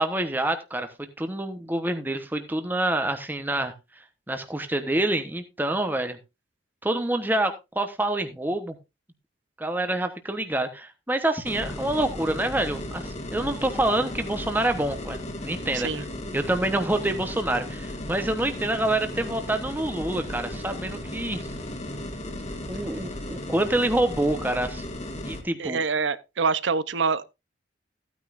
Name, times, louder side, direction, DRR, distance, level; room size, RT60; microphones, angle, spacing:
voice 1, 0.0-3.7 4.3-6.2 6.8-8.8 9.6-16.0 16.3-21.4 22.7-24.8 25.3-25.8, right 1 dB, 10° right, 1.0 m, -27 dB
sound 1, 11.4-25.4, left 1 dB, 40° left, 1.9 m, -35 dB
voice 2, 15.7-16.0 25.6-27.2, right 5 dB, 90° right, 0.8 m, -25 dB
15.0 x 9.4 x 2.5 m
head